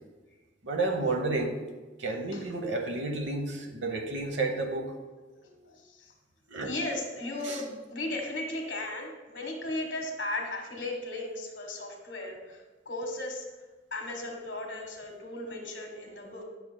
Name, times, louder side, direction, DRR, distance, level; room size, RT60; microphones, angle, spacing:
voice 1, 0.6-1.6 2.0-4.9 6.5-6.7 7.4-7.6, right 2 dB, 80° right, 5 dB, 0.9 m, -31 dB
voice 2, 5.3-6.1 6.6-13.4 13.9-16.4, left 2 dB, 80° left, 2 dB, 1.4 m, -36 dB
9.2 x 6.0 x 2.2 m, 1.3 s
head